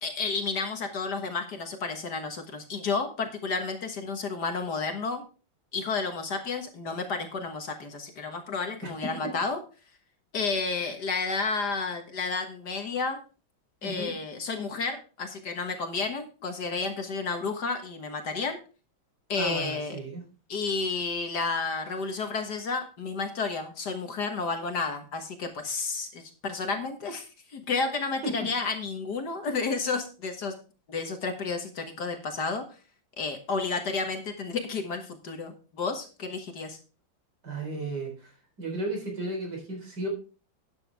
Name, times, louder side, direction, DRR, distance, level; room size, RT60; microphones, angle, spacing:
voice 1, 0.0-5.2 5.7-9.6 10.3-13.2 13.8-18.6 19.3-20.0 20.5-30.5 30.9-32.6 33.2-36.8, left 4 dB, 55° left, 6 dB, 2.0 m, -31 dB
voice 2, 13.8-14.1 19.4-20.2 28.2-28.5 37.4-38.3 38.6-40.1, right 2 dB, 55° right, 2 dB, 4.7 m, -34 dB
12.5 x 9.4 x 3.4 m, 0.35 s
omnidirectional pair, 2.2 m